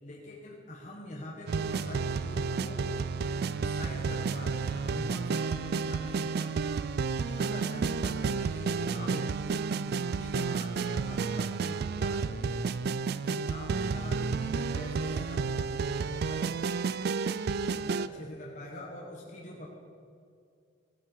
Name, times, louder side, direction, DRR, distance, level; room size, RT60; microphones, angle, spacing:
voice 1, 0.0-2.9 3.6-6.7 7.2-9.6 10.2-12.6 13.2-16.4 17.7-19.7, left 1 dB, 40° left, -3 dB, 1.6 m, -44 dB
sound 1, 1.5-18.1, right 5 dB, 50° right, 0.3 m, -31 dB
16.5 x 8.9 x 4.6 m, 2.4 s
head